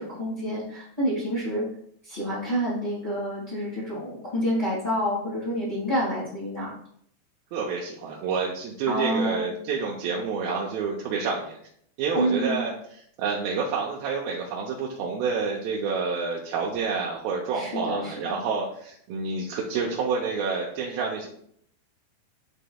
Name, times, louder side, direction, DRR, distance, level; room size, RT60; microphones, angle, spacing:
voice 1, 0.0-1.6 2.0-6.7 8.9-9.5 12.1-12.6 17.5-18.4, equal, 40° left, -10 dB, 0.6 m, -28 dB
voice 2, 7.5-11.6 12.0-12.7 13.2-21.3, right 5 dB, 75° right, -3 dB, 2.3 m, -28 dB
11.5 x 3.9 x 2.3 m, 0.66 s
omnidirectional pair, 4.7 m